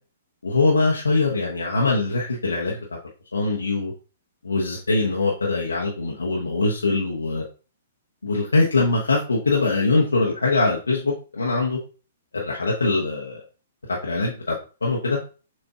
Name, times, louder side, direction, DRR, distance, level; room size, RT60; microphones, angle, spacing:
voice 1, 0.4-2.8 3.3-3.9 4.4-7.4 8.2-11.8 12.3-13.4 14.0-14.5 14.8-15.2, left 3 dB, 80° left, -3 dB, 0.8 m, -22 dB
7.1 x 2.5 x 2.3 m, 0.35 s
figure-of-eight pair, 115°, 0 cm